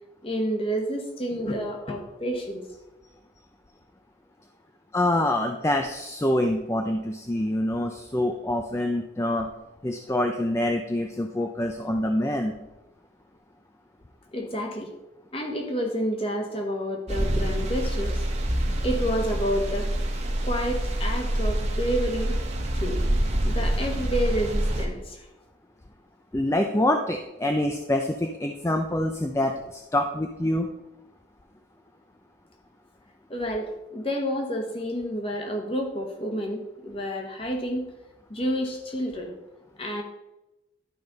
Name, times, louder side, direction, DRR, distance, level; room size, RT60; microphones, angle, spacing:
voice 1, 0.2-2.7 14.3-14.9 15.3-18.3 18.8-19.9 20.4-22.3 22.7-23.0 23.4-25.3 33.3-37.9 38.3-39.3 39.8-40.0, equal, 30° left, 3 dB, 1.3 m, -29 dB
voice 2, 4.9-9.5 9.8-12.5 26.3-30.7, left 1 dB, 15° left, 4 dB, 0.4 m, -26 dB
sound 1, 17.1-24.9, right 1 dB, 35° right, 1.1 m, -26 dB
11.5 x 5.2 x 4.0 m, 0.99 s
head